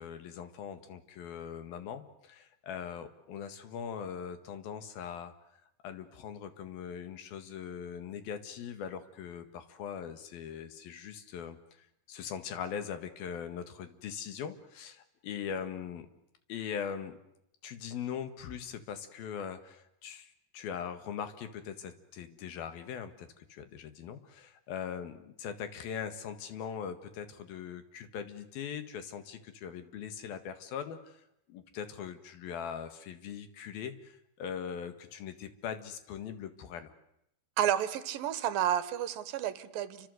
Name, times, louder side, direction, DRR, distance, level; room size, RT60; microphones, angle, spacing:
voice 1, 0.0-5.3 5.8-16.1 16.5-17.2 17.6-31.2 31.5-36.9, left 8 dB, 80° left, 10 dB, 3.7 m, -41 dB
voice 2, 37.6-40.1, right 10 dB, 75° right, 14 dB, 2.9 m, -31 dB
29.0 x 25.5 x 8.0 m, 0.79 s
omnidirectional pair, 4.2 m